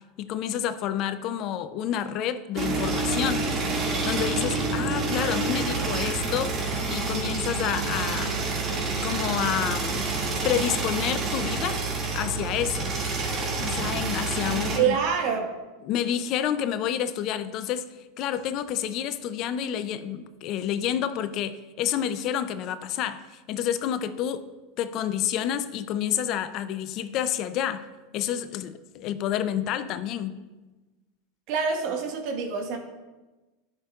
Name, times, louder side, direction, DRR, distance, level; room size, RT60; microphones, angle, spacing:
voice 1, 0.2-3.5 4.0-6.6 6.9-8.5 9.0-10.1 10.4-11.8 12.1-12.9 13.6-15.0 15.8-17.8 18.2-24.4 24.8-27.9 28.1-30.4, left 10 dB, 50° left, 13 dB, 0.5 m, -29 dB
sound 1, 2.5-14.8, right 3 dB, 40° right, 2.1 m, -28 dB
voice 2, 14.7-15.5 31.5-32.8, right 6 dB, 60° right, 3 dB, 1.5 m, -26 dB
12.5 x 6.0 x 2.4 m, 1.2 s
hypercardioid pair, 100°, 0 cm